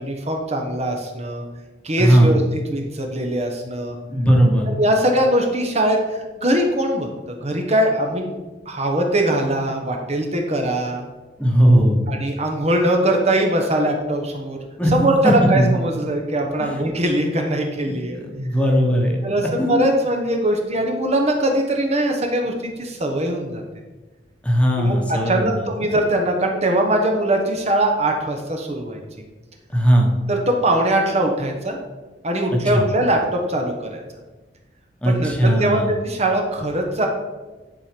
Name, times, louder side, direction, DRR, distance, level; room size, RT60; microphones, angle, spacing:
voice 1, 0.0-1.4 1.8-2.4 2.7-4.0 4.7-7.1 7.4-8.3 8.7-11.0 12.1-14.6 14.9-18.2 19.2-23.6 24.8-29.0 30.3-31.8 32.2-34.0 35.0-37.1, right 1 dB, 35° right, 2 dB, 1.1 m, -21 dB
voice 2, 2.0-2.4 4.1-4.7 11.4-12.0 14.8-14.9 15.4-15.7 16.6-16.9 18.1-19.2 19.4-19.8 24.4-25.7 29.7-30.2 32.5-32.9 35.0-35.9, equal, 5° left, 0 dB, 1.3 m, -18 dB
10.5 x 4.5 x 5.2 m, 1.2 s
head